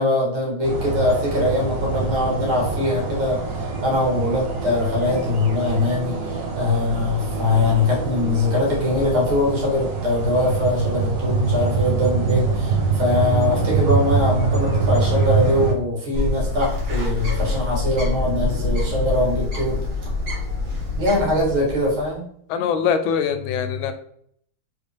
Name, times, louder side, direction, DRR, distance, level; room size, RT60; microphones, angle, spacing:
voice 1, 0.0-19.8 21.0-22.2, left 2 dB, 90° right, -4 dB, 2.6 m, -22 dB
sound 1, 0.6-15.7, right 4 dB, 75° right, 0.5 m, -24 dB
Bird, 16.1-22.1, left 3 dB, 40° right, 1.5 m, -25 dB
voice 2, 22.5-23.9, left 7 dB, 85° left, 9 dB, 1.4 m, -22 dB
4.3 x 3.3 x 3.5 m, 0.66 s
omnidirectional pair, 2.2 m